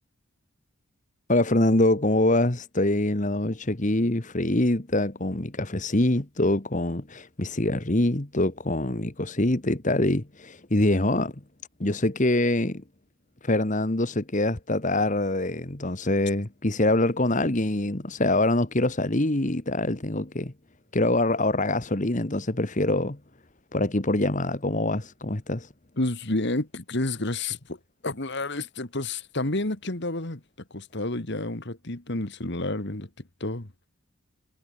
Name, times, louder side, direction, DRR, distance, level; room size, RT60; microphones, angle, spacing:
voice 1, 1.3-11.3 11.8-12.8 13.4-20.5 20.9-23.2 23.7-25.7, left 1 dB, 35° left, 1.5 m, -24 dB
voice 2, 26.0-27.8 28.0-30.4 30.7-33.1 33.4-33.7, left 2 dB, 50° left, 2.0 m, -30 dB
head